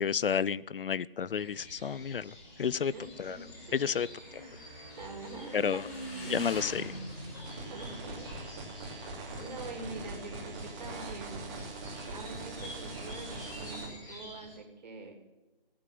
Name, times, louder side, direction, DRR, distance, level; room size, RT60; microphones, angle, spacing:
voice 1, 0.0-2.9 3.2-3.4 3.7-4.1 5.5-5.9 6.3-6.9, left 7 dB, 65° left, 21 dB, 0.5 m, -31 dB
sound 1, 1.3-14.6, left 1 dB, 10° left, 3.0 m, -50 dB
Motorcycle / Engine, 2.4-11.6, equal, 30° left, 4.5 m, -45 dB
voice 2, 2.9-3.8 4.2-4.6 5.0-5.8 6.2-6.8 7.6-8.3 9.4-11.5 12.1-15.1, right 3 dB, 45° right, 3 dB, 3.0 m, -45 dB
sound 2, 7.1-13.9, right 2 dB, 20° right, 2.6 m, -42 dB
15.5 x 8.7 x 7.6 m, 1.1 s
figure-of-eight pair, 160°, 29 cm